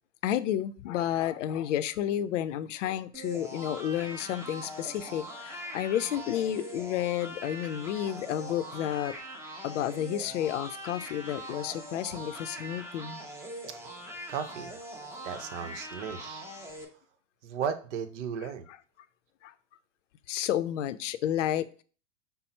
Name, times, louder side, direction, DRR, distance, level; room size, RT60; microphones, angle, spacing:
voice 1, 0.2-9.1 9.6-13.2 19.4-19.5 20.3-21.8, left 11 dB, 75° left, 13 dB, 0.5 m, -31 dB
sound 1, 3.1-16.8, right 1 dB, 5° right, 0.7 m, -42 dB
voice 2, 14.3-14.8 15.2-16.4 17.4-18.7, right 7 dB, 70° right, 9 dB, 0.8 m, -35 dB
5.5 x 2.0 x 4.1 m, 0.40 s
hypercardioid pair, 115°, 37 cm